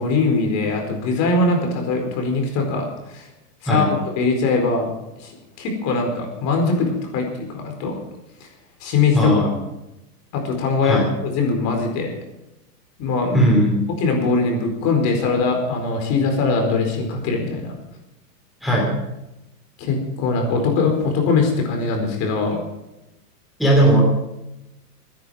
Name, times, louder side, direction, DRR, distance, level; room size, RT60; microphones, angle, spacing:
voice 1, 0.0-3.2 3.6-4.9 5.2-5.3 5.6-8.0 8.8-9.5 10.3-12.1 13.0-13.5 13.9-17.7 19.8-22.6, left 4 dB, 35° left, 3 dB, 4.5 m, -21 dB
voice 2, 9.1-9.6 10.8-11.1 13.3-13.8 18.6-19.0 23.6-24.2, right 1 dB, ahead, -3 dB, 3.0 m, -17 dB
23.5 x 10.5 x 5.1 m, 0.93 s
hypercardioid pair, 150°, 47 cm